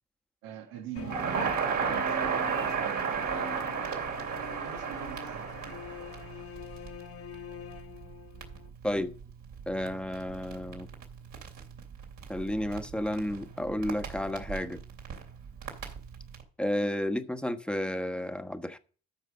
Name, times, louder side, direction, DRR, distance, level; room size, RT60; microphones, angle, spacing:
voice 1, 0.4-4.1 4.6-5.8, right 9 dB, 85° right, 1.6 m, -44 dB
sound 1, 0.9-8.7, left 6 dB, 40° left, 1.1 m, -45 dB
Crackle, 1.0-16.4, right 6 dB, 60° right, 2.9 m, -35 dB
voice 2, 9.7-10.9 12.3-14.8 16.6-18.8, left 1 dB, 5° left, 1.1 m, -32 dB
13.0 x 5.3 x 5.3 m
supercardioid pair, 65°, 35 cm